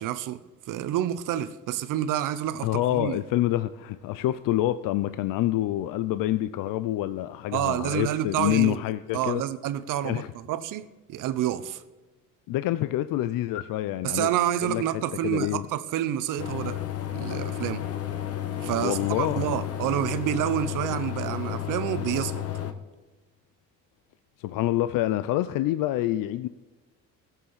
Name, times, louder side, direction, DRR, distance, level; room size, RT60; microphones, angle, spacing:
voice 1, 0.0-3.2 7.5-8.8 9.1-11.8 14.0-16.8 17.1-17.9 18.6-22.5, right 11 dB, 70° right, 0.9 m, -28 dB
voice 2, 2.6-9.4 10.0-10.3 12.5-14.3 14.6-14.8 15.2-15.7 18.8-19.6 24.4-26.5, left 14 dB, 80° left, 0.6 m, -27 dB
sound 1, 16.4-22.7, left 11 dB, 45° left, 1.2 m, -32 dB
16.5 x 7.5 x 5.6 m
cardioid pair, 165°, 32 cm